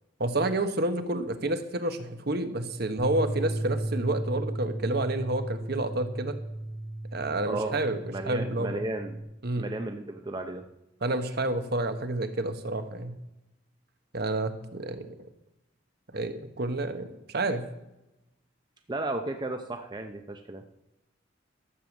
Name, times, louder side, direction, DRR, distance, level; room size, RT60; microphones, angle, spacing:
voice 1, 0.2-6.4 7.1-8.0 8.3-8.8 9.4-9.7 11.0-13.1 14.1-15.1 16.1-17.6, right 2 dB, 55° right, 8 dB, 1.2 m, -29 dB
sound 1, 3.0-9.2, right 1 dB, 35° left, 1.9 m, -35 dB
voice 2, 7.5-7.8 8.1-9.2 9.6-10.6 18.9-20.6, right 2 dB, 25° right, 5 dB, 0.7 m, -34 dB
12.5 x 6.9 x 7.3 m, 0.91 s
head